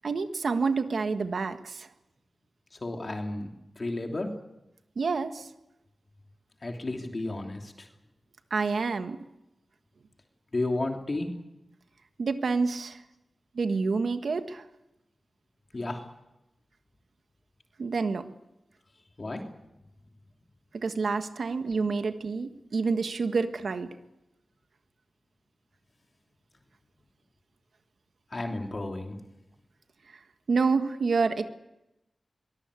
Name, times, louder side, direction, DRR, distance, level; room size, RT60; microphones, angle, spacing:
voice 1, 0.0-1.9 4.9-5.5 8.5-9.2 12.2-13.0 13.5-14.6 17.8-18.2 20.7-23.9 30.5-31.5, right 4 dB, 70° right, 8 dB, 1.5 m, -28 dB
voice 2, 2.8-3.5 3.8-4.3 6.6-7.9 10.5-11.3 15.7-16.0 19.2-19.4 28.3-29.2, left 2 dB, 35° left, 3 dB, 3.1 m, -32 dB
23.0 x 20.0 x 8.4 m, 0.95 s
wide cardioid pair, 130°, 0 cm